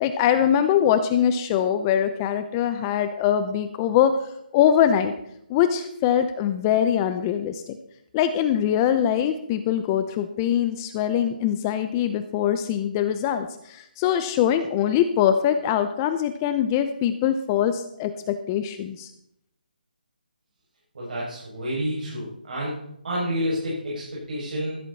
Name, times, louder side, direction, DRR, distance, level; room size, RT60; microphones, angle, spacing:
voice 1, 0.0-4.1 4.5-5.1 5.5-7.8 8.1-19.1, left 9 dB, 20° left, 10 dB, 0.7 m, -23 dB
voice 2, 20.9-22.8 23.0-24.8, equal, 60° right, -6 dB, 6.5 m, -29 dB
15.5 x 12.0 x 4.2 m, 0.76 s
figure-of-eight pair, 155°, 5 cm